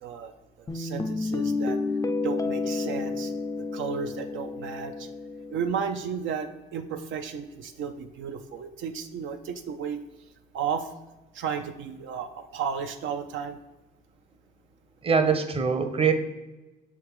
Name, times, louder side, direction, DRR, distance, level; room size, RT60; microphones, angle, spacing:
voice 1, 0.0-1.8 2.2-3.3 3.7-5.1 5.5-10.0 10.5-10.9 11.3-13.6, right 7 dB, 75° right, 6 dB, 0.5 m, -33 dB
Guitar, 0.7-5.7, left 3 dB, 15° left, 0.4 m, -30 dB
voice 2, 15.0-16.1, right 6 dB, 30° right, 7 dB, 0.7 m, -23 dB
5.9 x 3.4 x 4.7 m, 1.1 s
cardioid pair, 90°, 20 cm